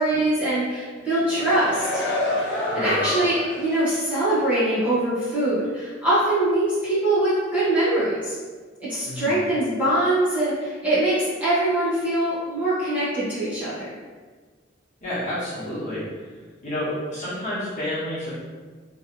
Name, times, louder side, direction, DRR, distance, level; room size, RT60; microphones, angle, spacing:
voice 1, 0.0-2.0 2.4-8.4 8.9-13.9, right 1 dB, 10° right, -13 dB, 1.4 m, -23 dB
sound 1, 1.0-3.7 4.1-4.3, left 1 dB, 60° left, 0.8 m, -28 dB
voice 2, 2.7-3.0 9.0-9.4 15.0-16.0 16.6-18.3, left 1 dB, 40° left, -11 dB, 1.4 m, -29 dB
3.3 x 3.2 x 3.1 m, 1.5 s
head